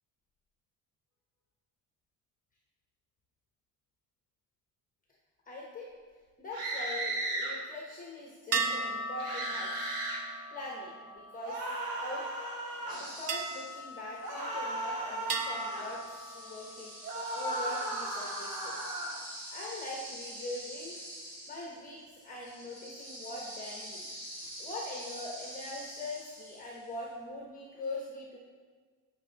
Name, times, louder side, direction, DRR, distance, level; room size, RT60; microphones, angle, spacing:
voice 1, 5.4-5.9 6.4-9.7 10.5-11.7 11.9-12.3 12.7-16.9 17.3-18.8 19.5-21.0 21.5-24.1 24.6-28.4, left 1 dB, 20° left, -2 dB, 1.0 m, -42 dB
sound 1, 6.5-7.5 9.2-10.2 11.4-13.0 14.2-15.9 17.0-19.2, right 1 dB, 65° right, 1.9 m, -36 dB
sound 2, 8.5-12.2 13.3-14.8 15.3-17.0, right 3 dB, 40° right, 0.7 m, -38 dB
sound 3, 12.9-14.4 14.7-27.0, equal, 20° right, 2.6 m, -46 dB
9.1 x 5.9 x 4.0 m, 1.5 s
cardioid pair, 150°, 39 cm